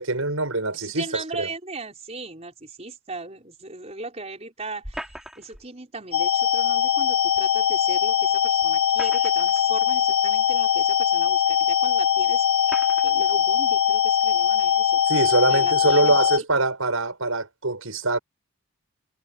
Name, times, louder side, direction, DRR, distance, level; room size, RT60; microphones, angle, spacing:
voice 1, 0.0-1.5 15.1-18.2, right 2 dB, 80° right, 5.6 m, -24 dB
voice 2, 0.7-5.1 5.4-12.8 13.0-15.0 15.5-16.1, right 3 dB, 30° right, 5.1 m, -38 dB
sound 1, 4.8-5.7 7.4-7.5 8.7-9.6 10.5-10.6 11.6-11.7 12.6-13.1, equal, ahead, 3.4 m, -39 dB
sound 2, 6.1-16.4, left 8 dB, 80° left, 1.0 m, -21 dB
head